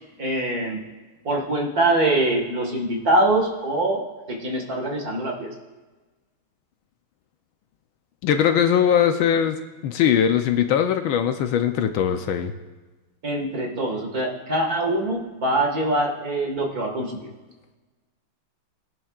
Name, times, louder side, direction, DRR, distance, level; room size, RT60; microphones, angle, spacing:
voice 1, 0.2-0.8 1.2-5.5 13.2-17.3, right 1 dB, 45° right, 0 dB, 2.0 m, -24 dB
voice 2, 8.2-9.6 9.8-12.5, left 9 dB, 75° left, 7 dB, 1.4 m, -20 dB
20.0 x 11.0 x 2.4 m, 1.2 s
omnidirectional pair, 2.4 m